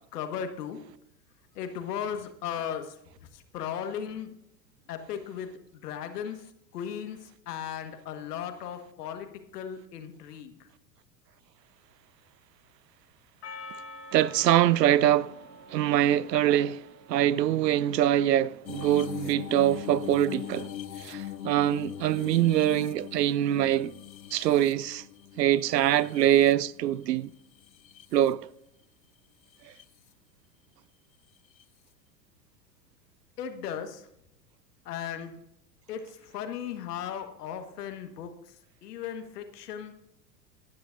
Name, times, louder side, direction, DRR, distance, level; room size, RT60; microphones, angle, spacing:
voice 1, 0.1-0.8 1.5-2.9 3.3-4.3 4.9-5.5 5.7-6.4 6.7-7.2 7.5-10.5 33.4-34.1 34.8-35.4 35.9-38.3 38.8-39.9, left 8 dB, 70° left, 1.6 m, -36 dB
Percussion, 13.4-17.7, left 2 dB, 30° left, 1.5 m, -47 dB
voice 2, 14.1-15.4 15.7-20.7 21.0-23.9 24.3-25.0 25.4-27.3 28.1-28.5, right 12 dB, 80° right, 0.5 m, -24 dB
sound 1, 18.7-27.0 27.6-28.3 29.5-29.9 31.6-31.7, left 11 dB, 85° left, 0.7 m, -41 dB
17.5 x 10.5 x 2.6 m
hypercardioid pair, 95°, 49 cm